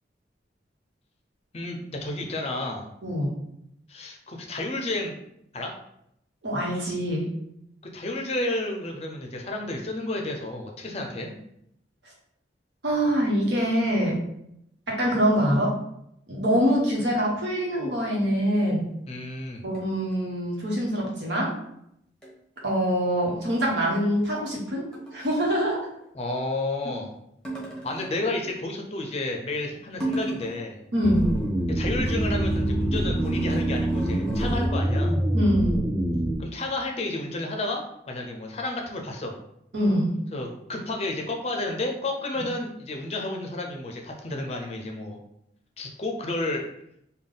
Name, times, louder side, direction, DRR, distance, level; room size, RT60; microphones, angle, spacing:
voice 1, 1.5-2.9 3.9-5.2 5.5-5.7 7.9-11.3 19.1-19.6 26.1-27.1 27.8-30.8 31.7-35.2 36.4-39.4 40.3-45.2 45.8-46.7, left 2 dB, 35° left, 2 dB, 0.5 m, -31 dB
voice 2, 3.0-3.3 6.4-7.3 12.8-14.2 14.9-15.7 16.3-18.8 19.6-21.5 22.6-24.9 25.1-25.9 26.8-26.9 30.9-31.3 35.3-35.8 39.7-40.1, equal, 80° right, -3 dB, 1.1 m, -24 dB
sound 1, 18.5-18.7 19.7-20.1 22.2-22.4 22.6-22.7 24.9-25.4 27.4-28.2 29.9-30.7 31.0-34.7, right 1 dB, 5° left, 0.8 m, -36 dB
sound 2, 31.0-36.4, right 1 dB, 20° right, 0.5 m, -25 dB
3.5 x 2.2 x 3.7 m, 0.77 s
head